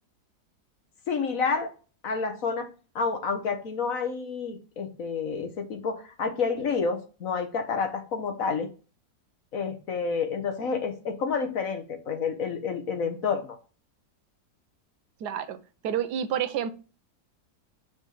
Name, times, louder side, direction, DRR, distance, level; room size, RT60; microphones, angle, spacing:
voice 1, 1.1-1.7 2.0-2.7 2.9-8.7 9.5-13.6, left 5 dB, 60° left, 1.6 m, -29 dB
voice 2, 15.2-15.6 15.8-16.7, right 9 dB, 85° right, 1.3 m, -29 dB
6.0 x 4.2 x 6.0 m
omnidirectional pair, 1.7 m